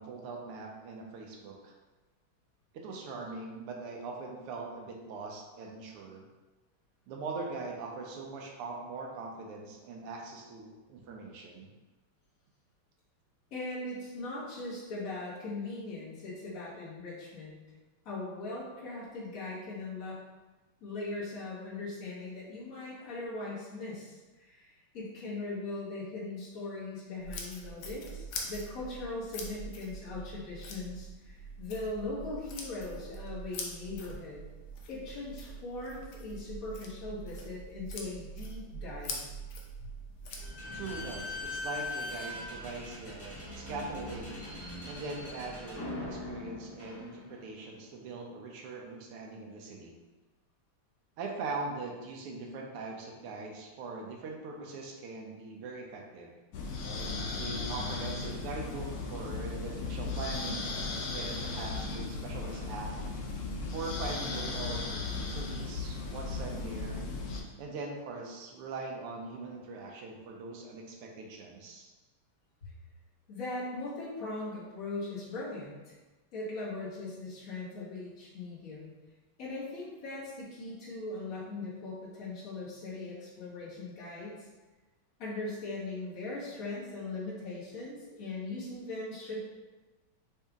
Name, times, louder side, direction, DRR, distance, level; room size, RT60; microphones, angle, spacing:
voice 1, 0.0-1.7 2.7-6.3 7.1-11.7 40.7-44.6 44.9-50.0 51.2-56.3 57.4-60.7 61.0-62.9 63.7-67.0 67.6-71.9, right 3 dB, 85° right, 0 dB, 1.7 m, -41 dB
voice 2, 13.5-17.6 18.1-20.2 20.8-34.4 34.9-39.3 72.6-72.7 73.3-76.0 76.3-78.9 79.4-84.5 85.2-89.4, left 2 dB, 40° left, -8 dB, 1.7 m, -40 dB
sound 1, 27.2-40.5, right 1 dB, 70° left, 1.4 m, -43 dB
Slam / Squeak, 40.3-47.6, left 2 dB, 10° left, 0.7 m, -41 dB
sound 2, 56.5-67.4, left 3 dB, 90° left, 0.8 m, -36 dB
5.3 x 2.8 x 3.5 m, 1.2 s
omnidirectional pair, 2.4 m